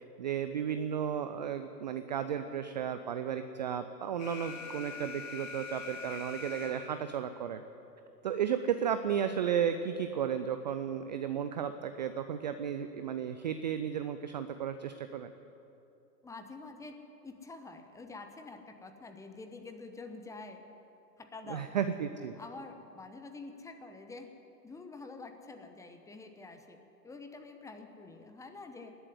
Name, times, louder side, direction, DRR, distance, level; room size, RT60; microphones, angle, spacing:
voice 1, 0.2-7.6 8.2-15.3 21.5-22.3, right 8 dB, 30° right, 10 dB, 0.4 m, -34 dB
Alarm, 4.2-7.2, left 4 dB, 50° left, 2.5 m, -44 dB
voice 2, 16.2-17.0 17.2-20.6 21.2-21.7 22.3-24.3 24.6-26.8 27.0-29.0, left 3 dB, 5° left, 6 dB, 0.8 m, -47 dB
18.5 x 7.8 x 9.6 m, 2.8 s
figure-of-eight pair, 110°, 49 cm